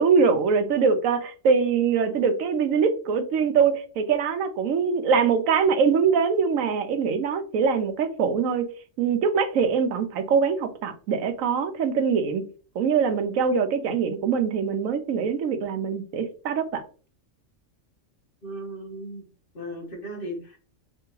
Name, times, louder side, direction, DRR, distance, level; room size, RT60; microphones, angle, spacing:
voice 1, 0.0-8.7 9.0-12.5 12.7-16.8, right 6 dB, 80° right, 1.1 m, -23 dB
voice 2, 18.4-19.3 19.5-20.6, right 1 dB, 45° left, 1.2 m, -36 dB
3.4 x 3.3 x 3.1 m
omnidirectional pair, 1.4 m